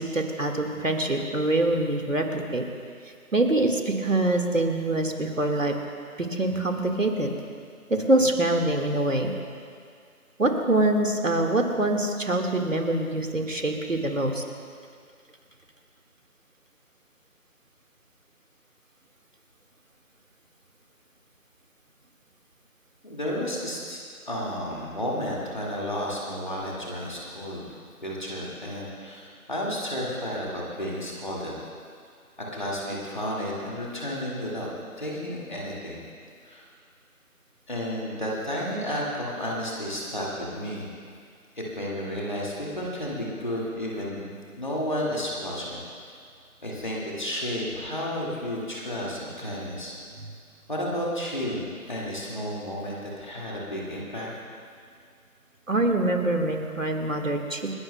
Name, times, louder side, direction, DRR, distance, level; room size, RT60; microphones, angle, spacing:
voice 1, 0.0-2.7 3.3-5.7 6.2-7.3 7.9-9.3 10.4-14.4 55.7-57.7, right 2 dB, 60° right, 3 dB, 1.8 m, -24 dB
voice 2, 23.0-27.6 28.0-31.5 32.4-34.7 35.0-36.0 36.4-36.6 37.7-40.9 41.6-45.8 46.6-50.0 50.7-54.3, equal, 30° left, -5 dB, 2.0 m, -32 dB
29.0 x 11.5 x 2.2 m, 2.2 s
figure-of-eight pair, 175°, 44 cm